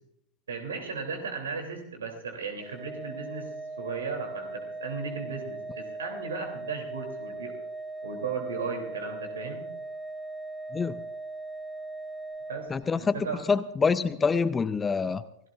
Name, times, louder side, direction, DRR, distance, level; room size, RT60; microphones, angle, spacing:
voice 1, 0.5-3.5 3.8-7.5 8.0-9.6 12.5-12.7 12.9-13.4, right 5 dB, 65° right, 4 dB, 3.2 m, -36 dB
Organ, 2.6-13.3, right 2 dB, 5° right, 1.7 m, -39 dB
voice 2, 12.7-13.1 13.5-15.2, left 5 dB, 15° left, 16 dB, 0.5 m, -26 dB
27.0 x 17.0 x 2.5 m, 0.78 s
figure-of-eight pair, 90°, 0 cm